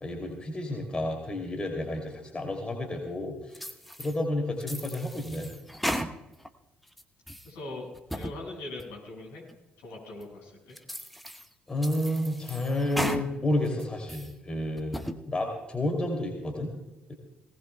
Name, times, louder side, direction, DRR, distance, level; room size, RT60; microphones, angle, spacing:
voice 1, 0.0-3.6 4.0-5.5 11.7-16.7 17.1-17.2, left 1 dB, 25° left, 2 dB, 2.8 m, -31 dB
sound 1, 3.5-4.2 4.6-6.5 6.9-7.5 7.9-8.4 8.8-8.9 9.5-9.6 10.2-10.3 10.7-11.5 11.8-13.2 13.7-14.3 14.8-15.2, equal, ahead, 1.0 m, -35 dB
voice 2, 7.4-9.4 9.8-10.8, left 2 dB, 65° left, -2 dB, 5.8 m, -41 dB
19.5 x 18.5 x 2.3 m, 1.0 s
figure-of-eight pair, 45°, 4 cm